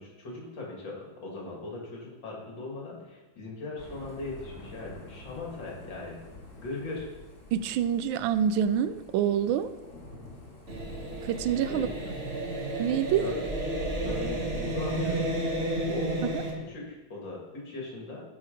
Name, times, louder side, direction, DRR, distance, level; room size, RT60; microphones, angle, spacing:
voice 1, 0.0-6.2 6.6-7.1 11.7-11.9 13.2-13.5 14.0-15.3 15.8-18.2, left 2 dB, 70° left, -2 dB, 2.7 m, -39 dB
Thunder / Rain, 3.8-15.5, left 1 dB, 40° left, 2.1 m, -49 dB
voice 2, 7.5-9.7 11.2-11.9 12.8-13.2 16.2-16.4, right 9 dB, 85° right, 12 dB, 1.4 m, -26 dB
sound 1, 10.7-16.5, right 1 dB, 35° right, 1.5 m, -32 dB
13.0 x 4.8 x 5.1 m, 1.1 s
omnidirectional pair, 2.1 m